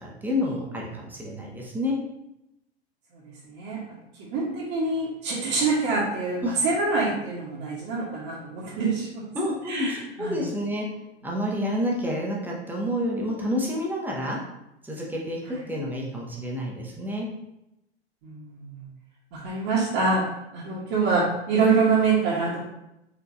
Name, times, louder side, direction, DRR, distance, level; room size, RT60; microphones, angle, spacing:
voice 1, 0.0-2.0 6.4-6.6 9.3-10.9 11.2-14.4 14.8-17.3, left 1 dB, 5° right, -2 dB, 1.0 m, -29 dB
voice 2, 3.4-3.8 4.3-9.2 9.7-10.5 18.2-18.8 19.3-20.3 20.5-22.6, right 4 dB, 45° right, -9 dB, 1.4 m, -25 dB
4.7 x 3.7 x 2.7 m, 0.86 s
figure-of-eight pair, 95°, 32 cm